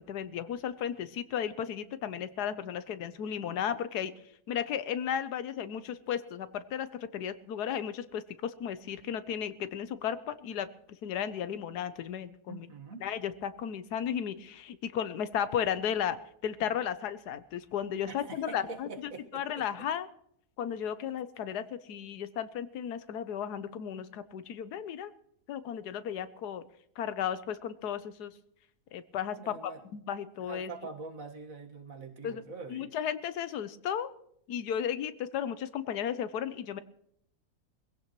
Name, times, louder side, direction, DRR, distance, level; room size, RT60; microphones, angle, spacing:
voice 1, 0.0-4.1 4.5-10.7 11.0-12.7 13.0-16.2 16.4-20.1 20.6-25.1 25.5-26.6 27.0-28.3 28.9-29.5 29.9-30.7 32.2-32.4 32.7-34.1 34.5-36.8, left 9 dB, 85° left, 13 dB, 1.4 m, -34 dB
voice 2, 12.5-13.0 18.1-19.6 29.4-29.8 30.3-32.9, right 4 dB, 60° right, 5 dB, 2.0 m, -44 dB
22.5 x 16.0 x 3.1 m, 0.74 s
omnidirectional pair, 1.7 m